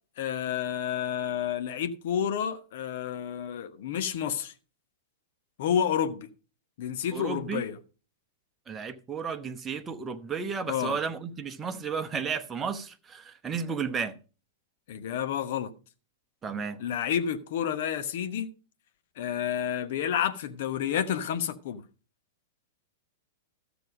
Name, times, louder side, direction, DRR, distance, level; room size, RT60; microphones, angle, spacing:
voice 1, 0.2-4.5 5.6-6.3 6.8-7.8 10.7-11.0 14.9-15.7 16.8-18.5 19.2-21.8, left 9 dB, 50° left, 1.0 m, -30 dB
voice 2, 7.1-7.6 8.7-14.1 16.4-16.8, right 6 dB, 15° right, 1.0 m, -33 dB
13.0 x 6.9 x 5.1 m
figure-of-eight pair, 100°, 0 cm